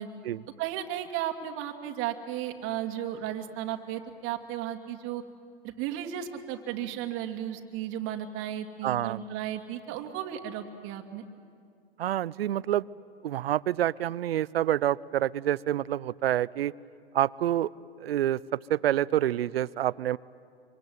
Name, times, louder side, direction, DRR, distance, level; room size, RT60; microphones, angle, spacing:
voice 1, 0.6-5.2 5.6-11.2, right 11 dB, 45° right, 3 dB, 2.5 m, -34 dB
voice 2, 8.8-9.2 12.0-12.9 13.2-16.7 17.1-17.7 18.0-20.2, right 12 dB, 85° right, 21 dB, 0.6 m, -27 dB
25.0 x 24.5 x 9.5 m, 2.3 s
hypercardioid pair, 120°, 29 cm